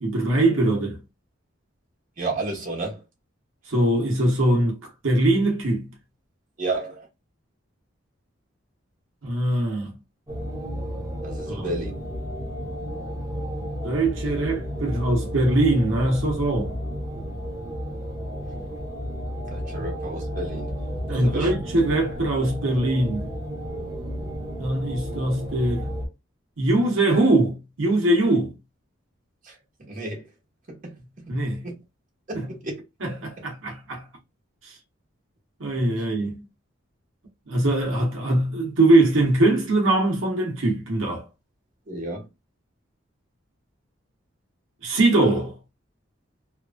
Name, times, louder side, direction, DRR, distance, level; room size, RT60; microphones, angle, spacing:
voice 1, 0.0-1.0 3.7-4.8 5.0-5.9 9.2-10.0 11.5-11.6 13.8-16.7 19.7-19.9 21.1-23.3 24.6-25.9 26.6-28.5 31.3-31.7 32.3-32.5 33.0-34.0 34.6-34.7 35.6-36.4 37.5-41.2 44.8-45.6, right 2 dB, 75° right, 1.0 m, -22 dB
voice 2, 2.2-3.0 6.6-7.1 11.2-11.9 19.5-20.7 21.1-21.5 29.4-30.3 30.7-31.3 31.6-31.7 32.3-32.8 33.4-33.5 41.9-42.3, right 2 dB, 40° right, 1.2 m, -32 dB
sound 1, 10.3-26.1, equal, 15° right, 0.8 m, -32 dB
3.0 x 2.5 x 2.2 m
head